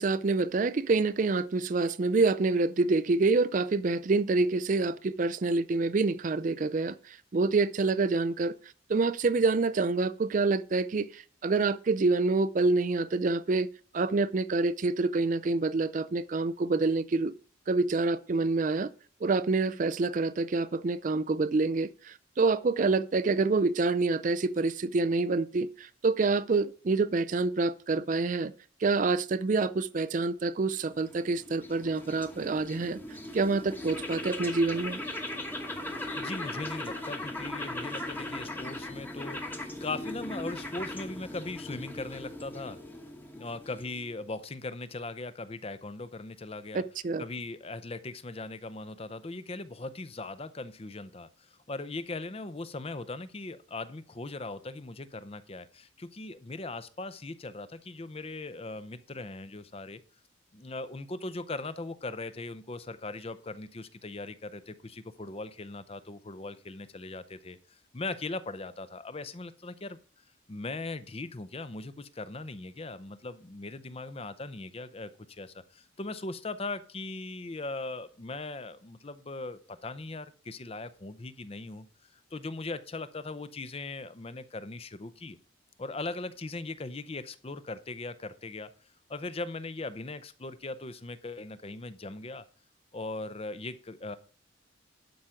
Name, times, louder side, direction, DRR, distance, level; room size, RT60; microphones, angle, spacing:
voice 1, 0.0-8.6 8.9-13.7 13.9-17.3 17.7-18.9 19.2-28.5 28.8-35.0 46.7-47.2, right 3 dB, 40° right, 0.4 m, -27 dB
sound 1, 30.8-44.2, left 1 dB, 10° left, 1.1 m, -39 dB
voice 2, 36.1-42.8 43.3-46.8 47.2-60.0 60.5-70.0 70.5-81.9 82.1-85.4 85.8-88.7 89.1-92.5 92.9-94.2, left 2 dB, 30° left, 0.6 m, -39 dB
12.0 x 5.0 x 5.8 m
head